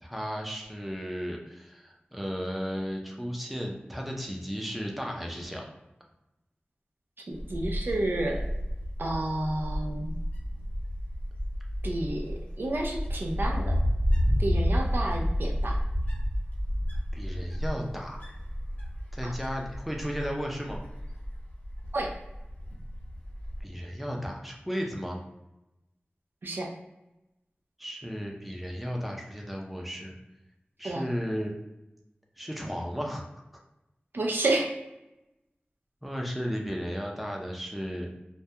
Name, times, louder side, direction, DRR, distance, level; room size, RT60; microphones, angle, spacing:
voice 1, 0.0-5.7 14.8-15.1 17.1-18.2 19.1-20.8 23.6-25.2 27.8-30.1 30.8-31.6 32.4-33.2 36.0-38.1, equal, ahead, 0 dB, 0.5 m, -34 dB
Wind, 7.3-23.6, equal, 45° left, 0.9 m, -31 dB
voice 2, 7.3-8.4 9.0-10.1 11.8-13.8 14.4-15.8 19.2-19.3 21.9-22.1 26.4-26.7 30.8-31.0 34.1-34.7, right 2 dB, 65° right, 0 dB, 0.4 m, -30 dB
2.2 x 2.2 x 2.8 m, 0.94 s
wide cardioid pair, 50°, 4 cm